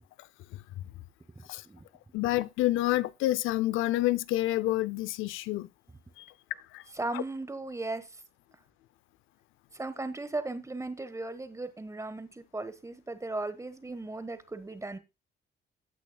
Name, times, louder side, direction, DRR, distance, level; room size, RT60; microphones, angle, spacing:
voice 1, 1.3-1.8 7.0-8.0 9.7-15.0, right 2 dB, 15° right, 1.2 m, -37 dB
voice 2, 2.1-5.7 6.2-6.3 6.7-6.8 7.1-7.2, left 16 dB, 85° left, 0.4 m, -28 dB
15.5 x 6.2 x 2.2 m
cardioid pair, 90°, 20 cm